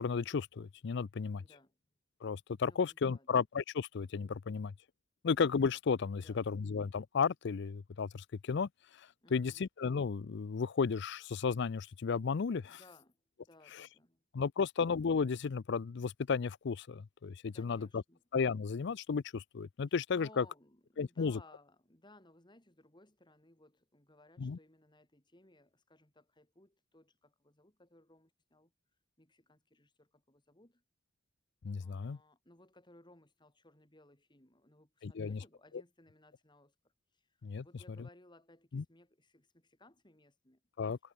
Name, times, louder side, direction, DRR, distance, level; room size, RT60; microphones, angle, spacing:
voice 1, 0.0-1.4 2.2-4.7 5.2-8.7 9.0-12.8 13.8-13.9 14.3-18.0 18.3-20.4 21.0-21.4 24.4-24.6 31.6-32.2 35.0-35.4 37.4-37.6 38.7-38.8 40.8-41.0, left 5 dB, 60° left, 0.5 m, -33 dB
voice 2, 1.4-1.8 2.6-3.4 6.1-6.5 9.2-9.6 12.7-14.2 17.5-18.2 20.1-28.7 29.2-30.8 31.8-36.8 37.1-40.6, left 1 dB, 25° left, 4.1 m, -62 dB
head